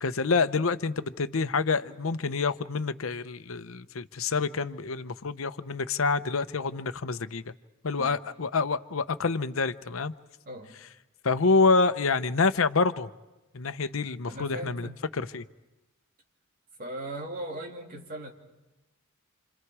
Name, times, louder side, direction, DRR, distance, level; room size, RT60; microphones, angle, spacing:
voice 1, 0.0-7.5 7.8-10.1 11.2-13.1 13.5-14.9 15.1-15.4, left 4 dB, 80° left, 0.7 m, -27 dB
voice 2, 10.4-10.7 14.2-15.0 16.8-18.3, right 1 dB, 45° right, 2.9 m, -38 dB
29.0 x 27.5 x 4.8 m
head